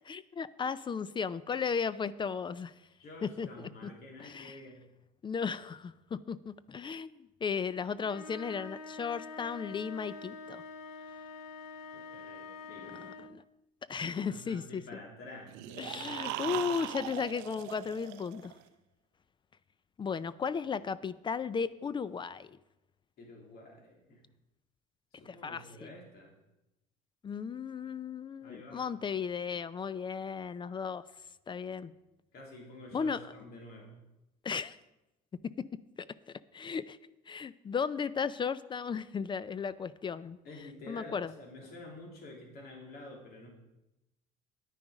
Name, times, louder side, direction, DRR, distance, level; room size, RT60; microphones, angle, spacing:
voice 1, 0.0-2.7 3.2-3.9 4.2-4.6 5.2-7.1 7.4-10.6 12.8-13.4 13.9-14.8 15.8-18.5 20.0-22.6 25.3-25.9 27.2-31.0 31.5-31.9 32.9-33.2 34.4-34.8 35.6-35.7 36.5-37.0 37.3-40.4 40.9-41.3, left 6 dB, 25° left, 17 dB, 0.4 m, -35 dB
voice 2, 3.0-4.9 11.9-13.0 14.0-16.7 23.2-24.2 25.1-26.3 28.4-28.9 32.3-34.0 40.4-43.5, left 1 dB, 60° left, 0 dB, 3.2 m, -49 dB
sound 1, 8.0-13.4, left 4 dB, 85° left, 0.8 m, -46 dB
sound 2, 15.5-18.6, right 16 dB, 75° right, 0.5 m, -40 dB
10.0 x 9.4 x 5.0 m, 0.95 s
supercardioid pair, 85°, 18 cm